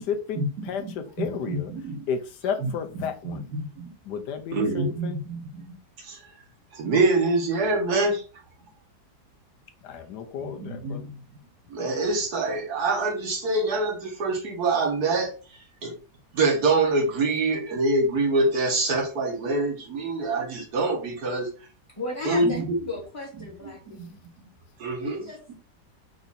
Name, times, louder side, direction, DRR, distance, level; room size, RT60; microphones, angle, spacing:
voice 1, 0.0-3.4 4.0-5.2 9.8-11.1, left 7 dB, 85° left, 1.3 m, -33 dB
voice 2, 1.2-2.0 2.6-2.7 3.8-3.9 4.5-5.7 6.0-6.2 6.7-8.2 10.6-11.1 11.7-15.3 15.8-15.9 16.3-21.5 22.3-22.8 23.9-24.2 24.8-25.2, right 2 dB, 70° right, 1.7 m, -25 dB
voice 3, 22.0-22.6 22.9-24.0 25.0-25.5, left 2 dB, 20° left, 1.3 m, -35 dB
4.8 x 2.7 x 4.1 m
omnidirectional pair, 1.8 m